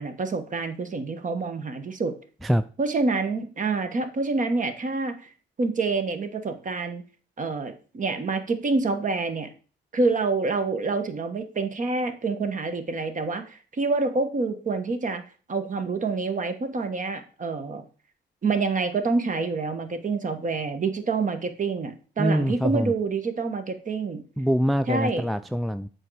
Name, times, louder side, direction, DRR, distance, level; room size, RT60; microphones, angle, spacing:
voice 1, 0.0-2.2 2.8-5.2 5.6-7.0 7.4-9.5 9.9-15.2 15.5-17.8 18.4-24.2 24.9-25.3, right 3 dB, 40° right, 1.3 m, -27 dB
voice 2, 22.2-22.9 24.4-25.9, equal, ahead, 0.3 m, -24 dB
7.5 x 4.5 x 4.8 m
cardioid pair, 90°, 20 cm